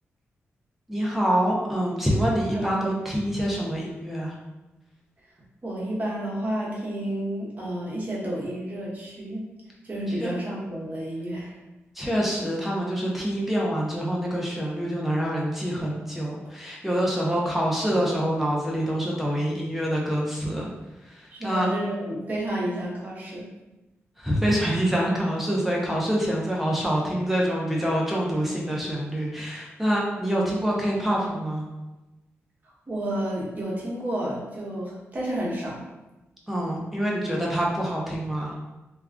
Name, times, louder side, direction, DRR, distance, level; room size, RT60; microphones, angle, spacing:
voice 1, 0.9-4.3 10.1-10.4 11.9-20.7 21.0-21.7 24.2-31.7 36.5-38.5, equal, 5° right, -4 dB, 0.6 m, -26 dB
voice 2, 2.5-3.0 5.6-9.4 9.8-11.5 21.3-23.4 32.9-35.8 37.3-37.4, right 1 dB, 35° right, -5 dB, 1.0 m, -31 dB
2.4 x 2.3 x 3.4 m, 1.0 s
cardioid pair, 90°, 5 cm